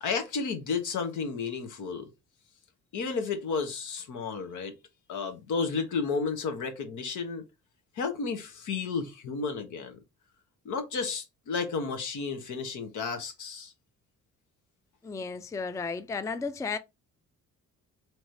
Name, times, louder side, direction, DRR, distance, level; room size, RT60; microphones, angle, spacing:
voice 1, 0.0-2.1 2.9-4.7 5.1-7.4 7.9-10.0 10.6-13.7, left 5 dB, 80° left, 1.2 m, -32 dB
voice 2, 15.0-16.8, left 4 dB, 10° left, 0.3 m, -33 dB
3.1 x 3.1 x 3.9 m
cardioid pair, 90°, 30 cm